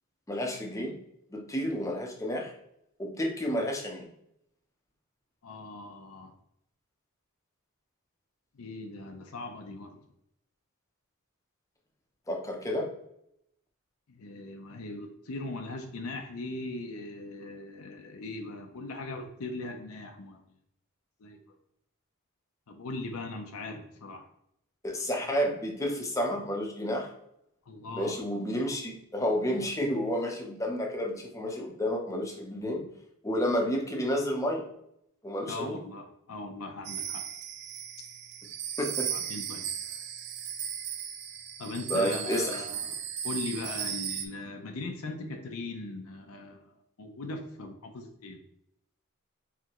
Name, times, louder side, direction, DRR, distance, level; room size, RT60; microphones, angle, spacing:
voice 1, 0.3-1.0 1.3-2.5 3.0-4.1 12.3-12.9 24.8-27.1 27.9-32.9 33.2-34.7 35.2-35.8 38.8-39.1 41.9-42.6, equal, 15° left, 1 dB, 0.7 m, -30 dB
voice 2, 5.4-6.3 8.5-10.0 14.1-20.4 21.2-21.6 22.7-24.3 27.7-28.2 35.5-37.3 39.1-39.6 41.6-43.0 43.2-48.4, left 2 dB, 70° left, 4 dB, 0.6 m, -39 dB
sound 1, 36.8-44.3, right 9 dB, 50° right, 0.4 m, -36 dB
4.7 x 3.4 x 2.9 m, 0.77 s
head